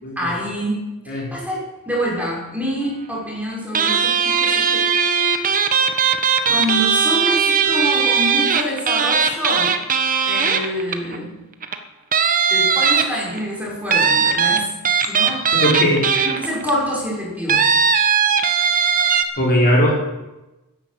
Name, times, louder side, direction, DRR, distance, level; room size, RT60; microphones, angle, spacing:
voice 1, 0.2-0.8 1.0-4.8 5.5-5.6 6.5-9.7 10.3-11.4 12.5-14.7 15.1-15.4 16.2-17.8, equal, 5° right, -4 dB, 5.6 m, -26 dB
sound 1, 3.7-11.2 11.6-11.8 12.1-13.4 13.9-16.7 17.5-19.2, right 6 dB, 40° right, 1.2 m, -18 dB
voice 2, 15.5-16.1 19.4-20.0, equal, 45° left, -3 dB, 4.3 m, -18 dB
13.0 x 10.5 x 8.5 m, 1.0 s
head